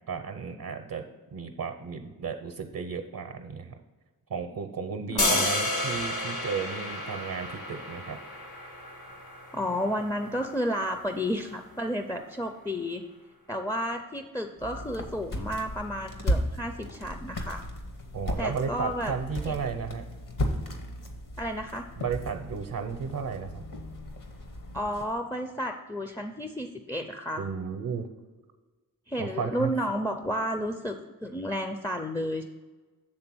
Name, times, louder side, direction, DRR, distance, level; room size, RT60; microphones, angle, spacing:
voice 1, 0.1-1.0 1.3-3.7 4.3-8.2 18.1-20.0 22.0-23.6 27.4-28.1 29.2-29.7, right 6 dB, 70° right, 5 dB, 0.7 m, -34 dB
voice 2, 5.1-5.5 9.5-13.0 13.5-17.6 18.4-19.1 19.5-19.6 21.4-21.9 24.7-27.4 29.1-31.0 31.2-32.4, equal, 10° left, 5 dB, 0.4 m, -32 dB
sound 1, 5.2-11.3, left 1 dB, 80° left, 1.9 m, -32 dB
sound 2, 14.6-25.1, equal, 60° left, 1.1 m, -35 dB
7.8 x 3.6 x 6.1 m, 1.3 s
wide cardioid pair, 85°, 37 cm